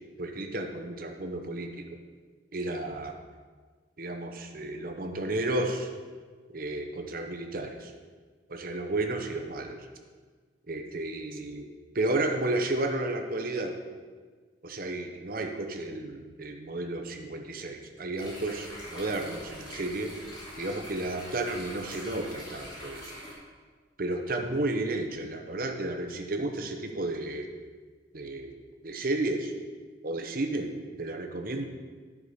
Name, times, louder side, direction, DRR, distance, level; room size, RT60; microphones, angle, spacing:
voice 1, 0.2-1.8 2.5-3.2 4.0-5.9 6.5-7.9 8.5-9.9 10.7-11.7 11.9-13.7 14.6-20.1 20.6-23.1 24.0-27.5 28.1-28.6 28.8-29.5 30.0-31.6, right 2 dB, 50° right, 4 dB, 0.8 m, -32 dB
sound 1, 18.2-23.3, equal, 25° left, 2.3 m, -44 dB
11.0 x 4.8 x 5.0 m, 1.5 s
head